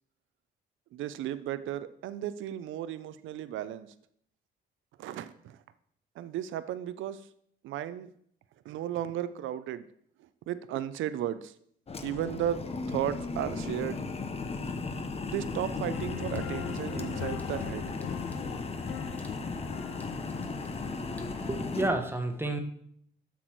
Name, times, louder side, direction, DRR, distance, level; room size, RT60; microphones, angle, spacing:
voice 1, 0.9-3.9 5.0-5.6 6.2-7.3 7.6-8.1 8.6-9.8 10.5-11.5 12.0-14.1 15.2-18.0, right 11 dB, 80° right, 14 dB, 0.5 m, -35 dB
sound 1, 11.9-21.9, left 4 dB, 30° left, 0.8 m, -36 dB
sound 2, 15.9-21.1, left 12 dB, 90° left, 0.4 m, -41 dB
sound 3, 16.1-21.8, left 1 dB, 10° left, 1.1 m, -48 dB
voice 2, 21.5-22.6, right 2 dB, 10° right, 6 dB, 1.2 m, -30 dB
8.1 x 6.0 x 4.6 m, 0.66 s
cardioid pair, 90°, 20 cm